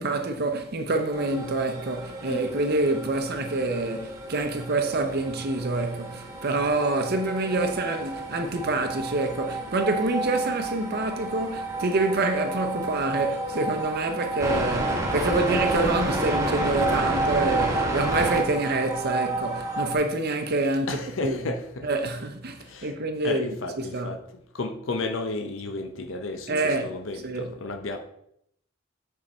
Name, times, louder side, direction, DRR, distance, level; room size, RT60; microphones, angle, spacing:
voice 1, 0.0-21.0 21.2-21.3 21.8-24.1 26.5-26.9 27.2-27.5, right 2 dB, 55° right, 0.8 m, -27 dB
sound 1, 1.1-20.0, right 2 dB, 15° right, 1.6 m, -30 dB
voice 2, 2.2-2.7 20.9-21.9 22.7-22.9 23.2-24.2 24.5-28.0, left 2 dB, 70° left, 0.7 m, -33 dB
7.6 x 4.6 x 4.3 m
head